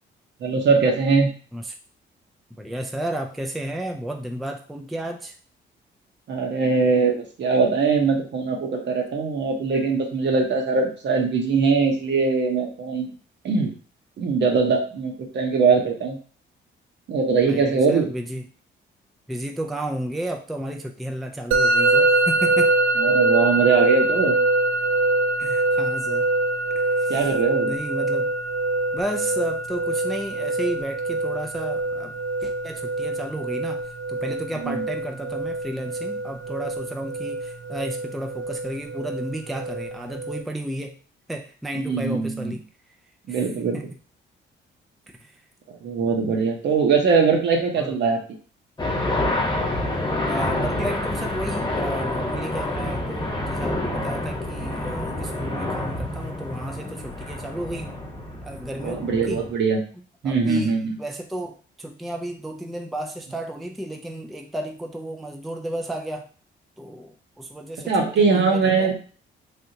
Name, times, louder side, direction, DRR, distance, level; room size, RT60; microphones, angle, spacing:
voice 1, 0.4-1.3 6.3-13.1 13.4-13.7 14.2-16.2 17.1-18.1 23.0-24.4 27.1-27.7 34.6-34.8 41.7-42.5 43.3-43.9 45.8-48.2 49.4-49.5 58.8-59.8 60.2-61.0 67.9-68.9, right 4 dB, 60° right, 2 dB, 0.9 m, -21 dB
voice 2, 2.5-5.4 17.4-18.4 19.3-22.7 25.4-26.3 26.7-27.3 27.6-28.3 28.9-32.2 32.4-41.0 41.3-42.6 43.3-43.4 43.7-43.8 45.2-45.4 47.8-47.9 50.3-57.9 58.4-59.4 60.2-60.7 61.0-66.3 66.8-68.0 68.2-68.9, right 1 dB, ahead, 3 dB, 0.3 m, -32 dB
Musical instrument, 21.5-40.4, right 2 dB, 75° right, 0.4 m, -24 dB
sound 1, 48.8-59.5, left 1 dB, 20° left, 1.1 m, -28 dB
3.4 x 2.7 x 2.7 m, 0.40 s
cardioid pair, 90°, 20 cm